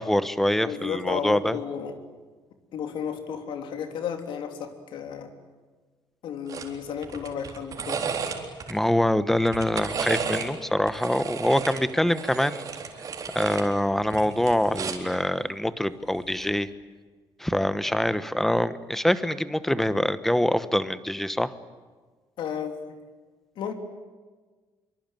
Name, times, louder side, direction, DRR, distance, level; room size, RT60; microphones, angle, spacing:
voice 1, 0.0-1.6 8.7-12.7 13.3-16.7 17.4-21.5, left 1 dB, 5° left, 13 dB, 1.1 m, -24 dB
voice 2, 0.6-2.0 2.7-5.3 6.2-8.0 22.4-23.0 23.5-23.7, left 7 dB, 70° left, 5 dB, 3.3 m, -33 dB
sound 1, 6.5-6.7 7.0-8.7 9.4-10.5 10.9-13.7 14.0-15.1 16.3-16.5, right 6 dB, 45° right, 3.9 m, -33 dB
25.0 x 24.5 x 9.2 m, 1.4 s
cardioid pair, 145°, 9 cm